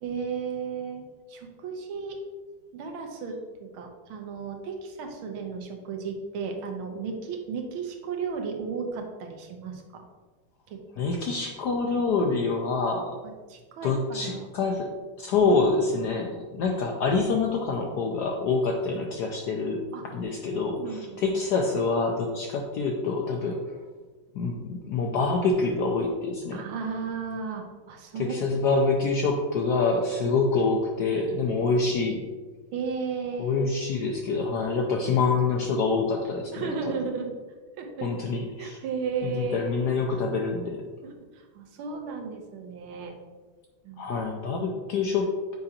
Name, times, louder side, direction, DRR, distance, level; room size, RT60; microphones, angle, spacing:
voice 1, 0.0-2.2 2.7-10.0 10.7-11.1 13.5-14.5 19.9-20.0 20.5-21.2 26.5-28.6 31.6-31.8 32.7-33.7 36.5-37.3 37.8-38.1 38.6-39.7 41.0-43.1 43.8-44.1, right 5 dB, 85° right, 3 dB, 1.7 m, -34 dB
voice 2, 11.0-13.2 13.8-14.9 15.2-19.9 20.1-23.6 24.3-26.6 28.2-32.2 33.4-36.9 38.0-38.8 39.2-40.8 44.0-45.5, left 4 dB, 75° left, 1 dB, 0.9 m, -26 dB
7.6 x 4.8 x 2.8 m, 1.4 s
omnidirectional pair, 2.3 m